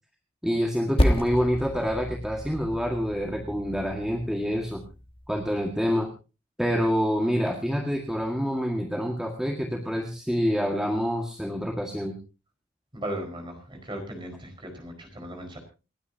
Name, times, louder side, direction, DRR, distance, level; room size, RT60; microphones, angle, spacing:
voice 1, 0.4-4.8 5.3-6.1 6.6-12.2, equal, 5° right, 0 dB, 1.9 m, -27 dB
Percussion, 1.0-5.8, equal, 25° left, 1.3 m, -30 dB
voice 2, 12.9-15.6, right 1 dB, 25° right, 4 dB, 4.9 m, -37 dB
29.0 x 10.0 x 2.8 m, 0.32 s
head